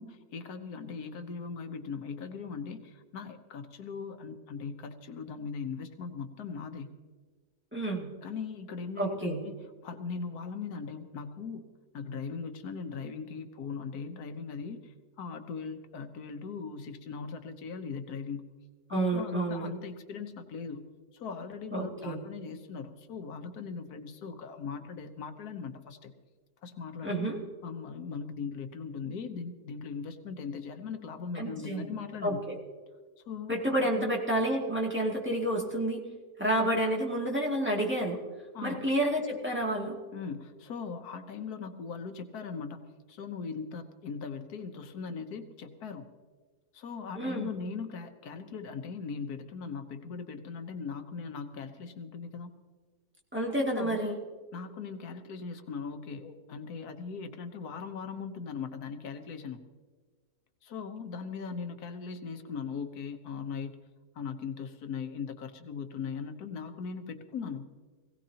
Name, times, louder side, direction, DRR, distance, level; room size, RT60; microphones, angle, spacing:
voice 1, 0.0-6.9 8.2-11.7 11.9-18.4 18.9-20.9 21.1-26.1 26.6-27.2 27.6-32.4 33.2-34.1 38.5-38.8 40.1-46.1 46.7-52.5 53.7-54.1 54.5-59.6 60.6-63.8 64.1-67.7, left 5 dB, 85° left, 7 dB, 1.5 m, -39 dB
voice 2, 7.7-8.1 9.0-9.4 18.9-19.7 21.7-22.2 27.0-27.4 31.3-31.8 32.2-32.6 33.5-36.0 36.4-38.2 38.6-40.0 47.2-47.5 53.3-54.2, right 1 dB, 5° right, -3 dB, 2.3 m, -29 dB
21.0 x 16.5 x 2.9 m, 1.5 s
omnidirectional pair, 1.6 m